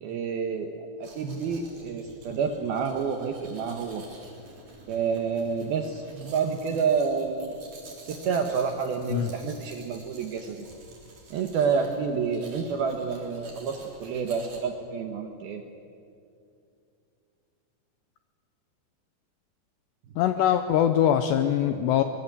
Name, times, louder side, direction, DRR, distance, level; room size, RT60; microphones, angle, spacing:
voice 1, 0.0-4.0 4.9-7.6 8.0-10.6 11.3-15.6, right 6 dB, 75° right, 5 dB, 2.3 m, -29 dB
Domestic sounds home sounds, 1.0-14.6, right 2 dB, 40° right, 4.6 m, -49 dB
voice 2, 20.2-22.0, left 10 dB, 85° left, 8 dB, 2.5 m, -22 dB
23.5 x 22.5 x 8.3 m, 2.5 s
omnidirectional pair, 5.9 m